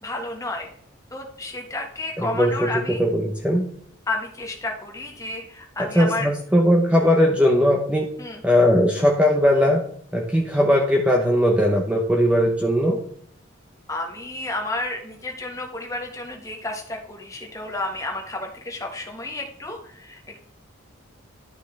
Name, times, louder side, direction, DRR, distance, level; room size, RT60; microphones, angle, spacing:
voice 1, 0.0-0.7 1.1-3.0 4.1-6.3 8.2-8.4 13.9-20.4, left 2 dB, 15° left, 1 dB, 1.4 m, -31 dB
voice 2, 2.2-3.7 5.8-8.1 8.4-9.8 10.1-13.0, equal, 5° right, 0 dB, 0.8 m, -19 dB
12.0 x 5.9 x 3.4 m, 0.63 s
head